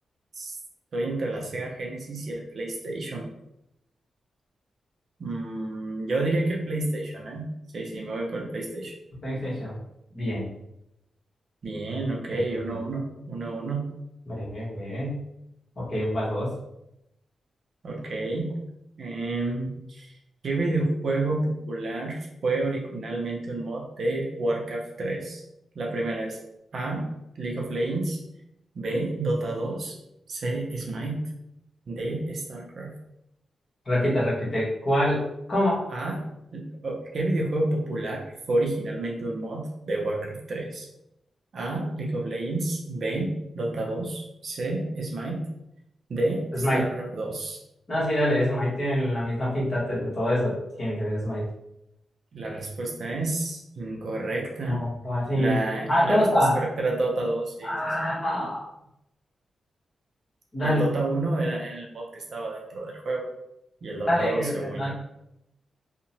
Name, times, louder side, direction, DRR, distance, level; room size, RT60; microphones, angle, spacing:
voice 1, 0.9-3.3 5.2-7.5 7.7-9.0 11.6-13.9 17.8-18.6 19.0-20.1 20.4-25.4 25.8-26.4 26.7-27.1 27.4-28.2 28.7-30.0 30.3-31.3 31.9-32.9 35.9-40.9 41.5-45.5 46.1-47.6 52.3-54.8 55.3-56.3 56.5-57.7 58.0-58.1 60.6-63.3 63.8-64.9, right 2 dB, 55° right, -1 dB, 0.5 m, -29 dB
voice 2, 9.2-9.7 10.1-10.5 12.3-12.6 14.3-15.2 15.8-16.5 33.8-35.8 46.6-46.9 47.9-51.5 54.6-55.6 55.9-56.6 57.6-58.7 60.5-60.8 64.1-64.9, equal, 35° left, -7 dB, 1.1 m, -25 dB
2.8 x 2.1 x 2.8 m, 0.82 s
wide cardioid pair, 150°, 0 cm